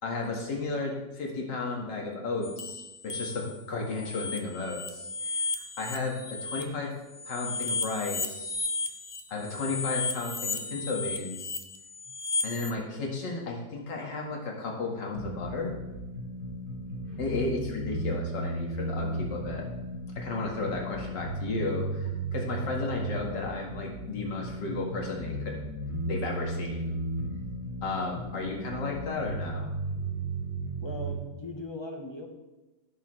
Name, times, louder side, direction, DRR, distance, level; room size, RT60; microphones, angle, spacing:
voice 1, 0.0-5.5 5.8-6.9 7.3-8.5 9.3-11.6 12.4-15.7 17.2-19.6 20.2-25.6 26.1-27.0 27.8-29.7, left 3 dB, 75° left, -1 dB, 2.4 m, -33 dB
sound 1, 2.4-3.6 3.9-6.6 7.1-12.7, left 4 dB, 40° left, 0.5 m, -34 dB
sound 2, 15.1-31.1, right 1 dB, 55° right, 4.0 m, -35 dB
voice 2, 30.8-32.3, left 1 dB, 20° left, 2 dB, 0.9 m, -39 dB
16.0 x 6.6 x 3.2 m, 1.0 s
omnidirectional pair, 1.9 m